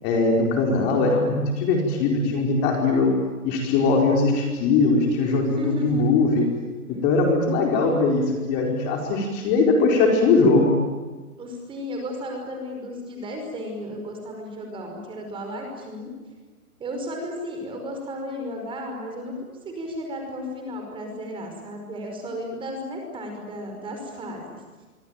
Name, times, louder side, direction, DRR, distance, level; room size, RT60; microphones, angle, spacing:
voice 1, 0.0-3.1 3.4-6.5 6.9-10.7, left 3 dB, 25° left, 1 dB, 4.7 m, -20 dB
voice 2, 5.6-6.2 6.9-7.0 11.4-16.1 16.8-19.4 19.6-24.6, equal, 10° right, 3 dB, 5.2 m, -34 dB
25.5 x 25.0 x 9.1 m, 1.3 s
hypercardioid pair, 155°, 45 cm